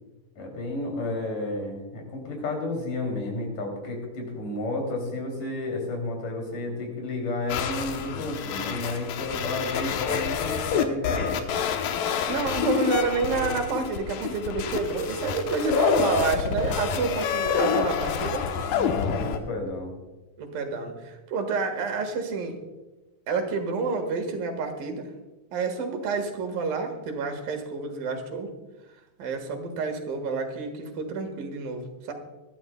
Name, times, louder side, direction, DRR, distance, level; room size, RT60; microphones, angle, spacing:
voice 1, 0.4-11.4 18.7-19.9, left 2 dB, 65° left, 1 dB, 4.5 m, -31 dB
sound 1, 7.5-19.4, left 7 dB, 85° left, 2.6 m, -28 dB
voice 2, 12.3-18.5 20.4-22.6 23.3-25.1 25.5-28.5 29.2-32.1, right 4 dB, 90° right, 5 dB, 3.3 m, -29 dB
21.5 x 12.5 x 2.3 m, 1.1 s
omnidirectional pair, 3.9 m